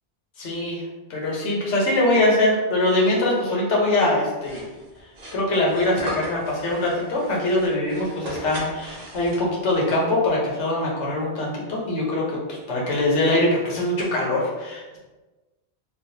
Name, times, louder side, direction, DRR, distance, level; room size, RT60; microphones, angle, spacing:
voice 1, 0.4-0.8 1.1-4.7 5.3-15.0, left 1 dB, 90° left, -4 dB, 1.2 m, -23 dB
sound 1, 4.4-9.8, equal, 45° right, 0.6 m, -37 dB
3.3 x 2.5 x 2.7 m, 1.2 s
omnidirectional pair, 1.2 m